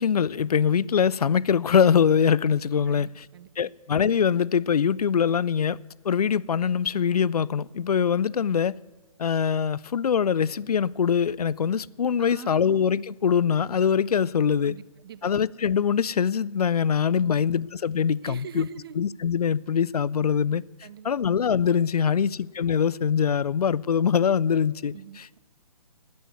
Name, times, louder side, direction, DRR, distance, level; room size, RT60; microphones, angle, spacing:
voice 1, 0.0-3.3 3.6-5.8 6.0-8.8 9.2-14.7 15.2-18.7 19.0-20.6 21.0-25.3, left 7 dB, 85° left, 0.4 m, -23 dB
voice 2, 2.9-3.7 12.2-12.7 14.6-15.3 17.1-17.6 18.2-19.0 20.8-21.3 24.9-25.4, right 10 dB, 40° right, 0.5 m, -44 dB
10.5 x 9.3 x 9.3 m
hypercardioid pair, 145°, 19 cm